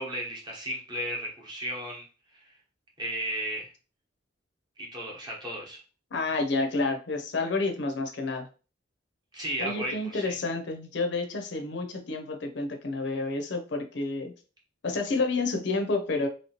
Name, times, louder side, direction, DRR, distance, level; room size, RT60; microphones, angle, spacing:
voice 1, 0.0-2.0 2.3-2.5 3.0-3.7 4.8-5.8 9.3-10.3, right 1 dB, 20° right, -2 dB, 1.0 m, -34 dB
voice 2, 6.1-8.5 9.6-14.3 14.8-16.3, left 3 dB, 60° left, 4 dB, 0.5 m, -29 dB
3.0 x 2.9 x 2.8 m, 0.36 s
head